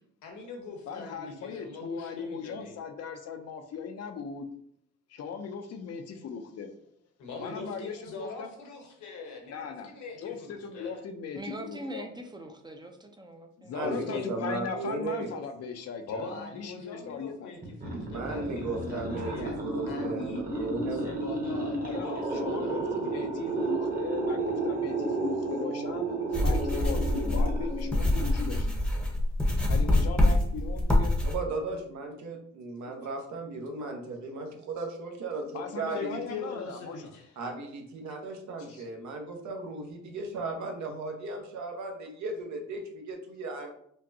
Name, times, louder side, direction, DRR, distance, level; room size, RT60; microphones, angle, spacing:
voice 1, 0.2-2.8 7.2-11.0 13.8-14.3 16.1-19.6 19.9-23.7 35.9-37.4 38.6-38.8, left 3 dB, 70° left, 2 dB, 1.1 m, -42 dB
voice 2, 0.9-4.5 5.1-6.7 7.4-8.5 9.5-12.1 13.6-17.5 21.8-28.7 29.7-31.1 35.5-37.1, left 6 dB, 55° left, 6 dB, 0.6 m, -38 dB
voice 3, 11.3-13.9, right 1 dB, 15° right, 4 dB, 0.5 m, -42 dB
voice 4, 13.7-15.4 17.0-17.1 18.0-21.2 31.2-36.1 37.4-43.7, right 3 dB, 70° right, 3 dB, 0.9 m, -36 dB
sound 1, 17.6-28.7, right 2 dB, 30° right, 1.1 m, -32 dB
sound 2, 26.3-31.4, left 1 dB, 5° left, 0.8 m, -25 dB
5.2 x 2.2 x 2.7 m, 0.69 s
cardioid pair, 90°, 30 cm